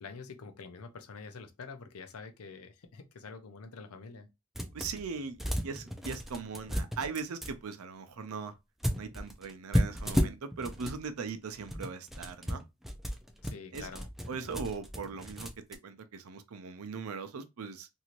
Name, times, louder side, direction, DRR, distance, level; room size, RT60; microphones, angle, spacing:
voice 1, 0.0-4.3 13.4-14.1, left 4 dB, 80° left, 0.5 m, -46 dB
sound 1, 4.6-5.1 5.4-7.5 8.8-11.0 11.5-15.7, equal, ahead, 0.4 m, -33 dB
voice 2, 4.7-8.6 8.9-12.6 13.7-13.9 14.3-15.5 15.8-17.9, right 5 dB, 85° right, 0.5 m, -39 dB
3.0 x 2.7 x 2.4 m
head